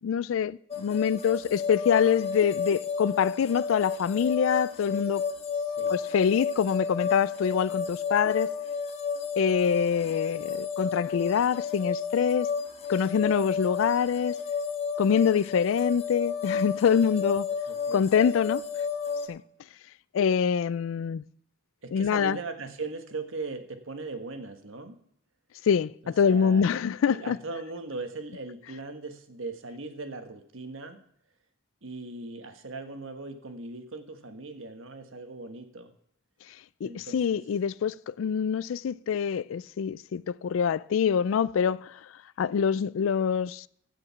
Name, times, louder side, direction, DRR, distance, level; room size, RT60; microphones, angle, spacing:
voice 1, 0.0-5.2 5.9-8.5 9.4-12.5 12.9-14.3 15.0-17.5 17.9-18.6 19.3-19.4 20.1-21.2 21.9-22.4 25.7-27.4 36.8-41.9 42.4-43.7, left 7 dB, 80° left, 0.3 m, -25 dB
sound 1, 0.7-19.3, left 6 dB, 30° left, 1.0 m, -32 dB
voice 2, 5.5-6.0 13.2-13.3 17.7-18.0 18.4-18.5 21.8-25.0 26.0-26.6 27.1-31.0 31.8-35.9 36.8-37.4, right 3 dB, 75° right, 1.3 m, -39 dB
15.0 x 5.1 x 5.8 m
head